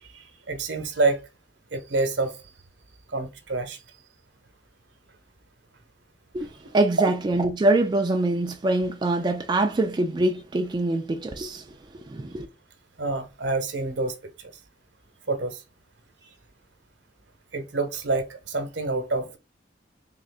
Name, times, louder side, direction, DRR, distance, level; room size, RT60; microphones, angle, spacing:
voice 1, 0.1-1.2 1.7-2.3 3.1-3.8 13.0-14.5 15.3-15.6 17.5-19.4, right 3 dB, 75° right, 0.8 m, -27 dB
voice 2, 6.7-11.6 12.1-12.5, right 2 dB, 25° right, 0.3 m, -24 dB
3.7 x 2.5 x 3.5 m
head